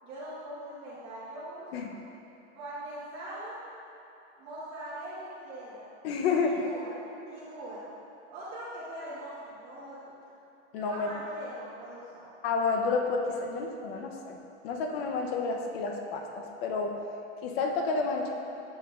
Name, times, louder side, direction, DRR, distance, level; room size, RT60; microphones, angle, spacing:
voice 1, 0.0-1.9 2.5-3.6 4.4-5.8 6.4-6.9 7.3-7.8 8.3-10.0 10.9-12.2, right 1 dB, 35° right, -11 dB, 1.4 m, -41 dB
voice 2, 6.0-6.6 10.7-11.1 12.4-14.4 14.6-17.0 17.4-18.3, left 4 dB, 55° left, 2 dB, 0.8 m, -30 dB
8.6 x 7.0 x 2.4 m, 3.0 s
supercardioid pair, 155°, 36 cm